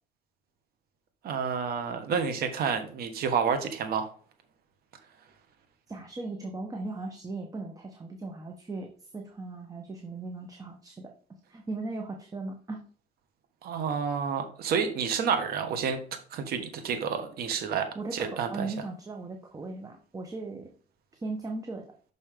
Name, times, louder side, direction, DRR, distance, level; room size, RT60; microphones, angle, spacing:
voice 1, 1.2-4.1 13.6-16.0 16.3-17.9 18.1-18.7, right 6 dB, 65° right, 7 dB, 1.3 m, -29 dB
voice 2, 5.9-11.1 11.5-12.8 17.9-20.7 21.2-21.8, right 3 dB, 20° right, 3 dB, 1.0 m, -38 dB
6.1 x 5.5 x 3.5 m, 0.43 s
cardioid pair, 110°, 17 cm